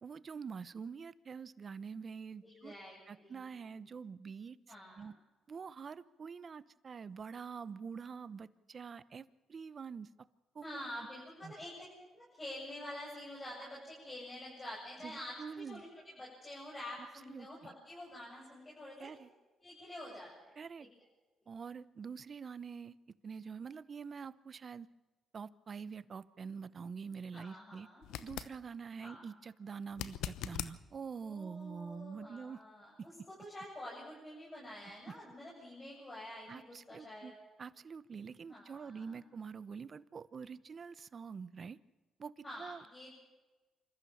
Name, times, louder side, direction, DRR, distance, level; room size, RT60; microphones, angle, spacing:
voice 1, 0.0-2.7 3.1-4.6 5.0-5.1 5.5-10.1 10.5-10.7 11.4-11.5 15.0-15.8 17.3-17.7 19.0-19.3 20.6-20.9 21.5-23.0 23.2-24.9 25.3-27.9 28.2-32.6 33.0-33.1 36.5-37.3 37.6-41.8 42.2-42.8, right 6 dB, 45° right, 16 dB, 0.9 m, -46 dB
voice 2, 2.4-3.4 4.7-5.1 10.6-11.7 12.1-19.1 19.6-20.5 20.8-20.9 27.3-28.0 29.0-29.2 31.2-37.3 38.5-39.2 42.4-43.2, left 1 dB, 25° left, -5 dB, 8.0 m, -48 dB
sound 1, 28.0-28.6 29.9-30.8 33.8-33.9, left 11 dB, 90° left, 0.9 m, -41 dB
27.0 x 14.0 x 7.2 m, 1.2 s
cardioid pair, 90°, 0 cm